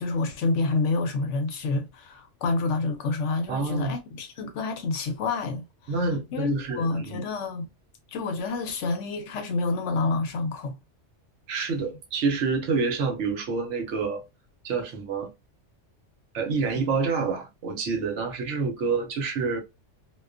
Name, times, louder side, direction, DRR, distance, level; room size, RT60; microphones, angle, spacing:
voice 1, 0.0-5.7 6.3-7.7 8.1-10.8 16.7-16.8, left 3 dB, 75° left, 0.9 m, -28 dB
voice 2, 3.5-3.9 5.9-7.2 11.5-14.2 14.6-15.3 16.3-19.6, right 4 dB, 70° right, 1.0 m, -27 dB
2.3 x 2.2 x 2.4 m
omnidirectional pair, 1.3 m